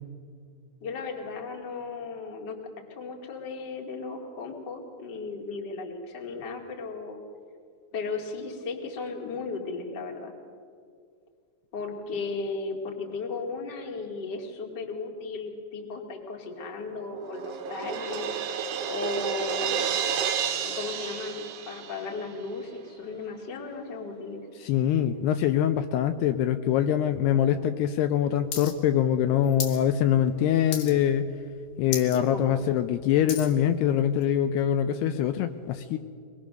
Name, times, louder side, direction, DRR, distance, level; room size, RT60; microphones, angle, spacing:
voice 1, 0.8-2.6 2.9-7.2 7.9-10.3 11.7-18.4 18.9-19.9 20.6-24.5 32.1-32.5, left 4 dB, 35° left, 1 dB, 2.1 m, -35 dB
Crash cymbal, 16.6-22.3, right 8 dB, 70° right, 2.0 m, -31 dB
voice 2, 24.6-31.3 31.8-36.0, left 10 dB, 80° left, 8 dB, 2.6 m, -24 dB
sound 1, 28.5-28.7 29.0-29.8 30.2-30.4 30.7-31.2 31.5-31.6 31.8-32.2 32.6-33.6 34.2-34.3, left 7 dB, 65° left, 3.2 m, -35 dB
23.5 x 20.5 x 6.5 m, 2.2 s
omnidirectional pair, 4.9 m